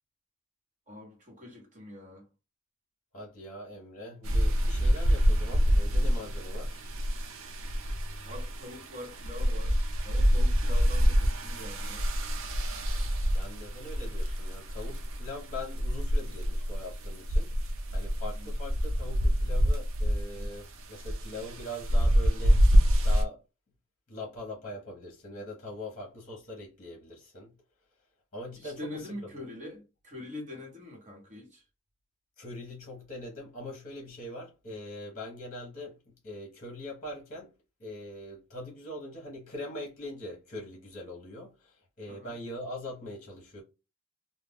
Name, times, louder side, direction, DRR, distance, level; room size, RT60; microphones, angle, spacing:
voice 1, 0.9-2.3 8.2-9.8 10.0-12.0 18.4-18.5 20.3-20.5 28.6-31.6 42.1-42.4, left 1 dB, 35° right, 1.1 m, -44 dB
voice 2, 3.1-6.8 13.3-17.6 17.9-22.6 23.0-23.4 24.1-27.5 28.3-29.3 32.4-37.5 37.8-43.6, left 1 dB, 35° left, 0.9 m, -42 dB
sound 1, 4.2-23.2, equal, 60° right, 0.5 m, -26 dB
2.4 x 2.1 x 3.4 m
head